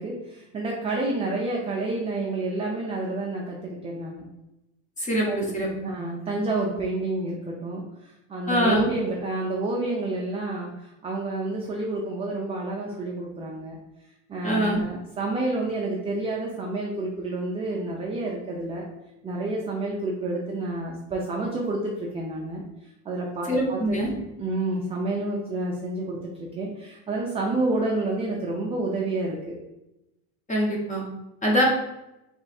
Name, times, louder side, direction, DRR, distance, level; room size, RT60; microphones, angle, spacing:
voice 1, 0.0-4.3 5.3-5.6 5.8-13.8 14.3-18.9 19.2-22.6 23.0-24.0 24.4-29.6, right 2 dB, 15° right, -2 dB, 0.3 m, -29 dB
voice 2, 8.5-8.9 14.4-14.8 23.5-24.1 30.5-31.0 31.4-31.6, equal, 20° left, -1 dB, 0.9 m, -23 dB
3.5 x 3.2 x 4.1 m, 0.92 s
cardioid pair, 160°, 39 cm